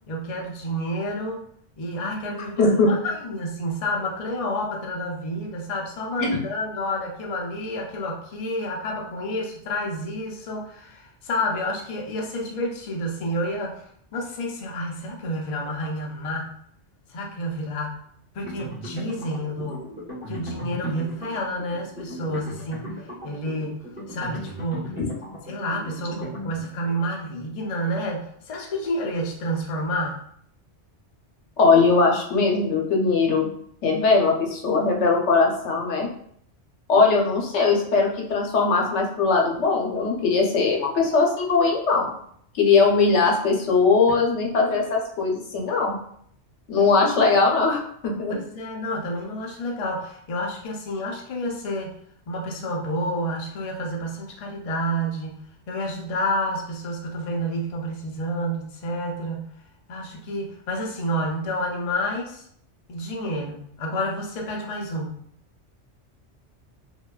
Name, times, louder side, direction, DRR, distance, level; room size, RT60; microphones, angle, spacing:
voice 1, 0.1-1.4 1.8-13.8 14.1-16.6 17.1-18.0 18.3-19.8 20.3-23.0 23.2-25.0 25.5-30.2 44.1-44.2 46.8-46.9 48.3-51.9 52.3-59.5 59.9-62.4 62.9-65.1, equal, 65° left, 0 dB, 0.3 m, -29 dB
voice 2, 2.6-2.9 6.2-6.4 25.0-25.1 31.6-33.5 33.8-36.1 36.9-42.1 42.6-45.9 46.7-48.4, left 4 dB, 80° left, 0 dB, 0.9 m, -20 dB
sound 1, 18.4-27.0, equal, 10° right, 0.9 m, -38 dB
2.7 x 2.2 x 2.2 m, 0.66 s
omnidirectional pair, 1.2 m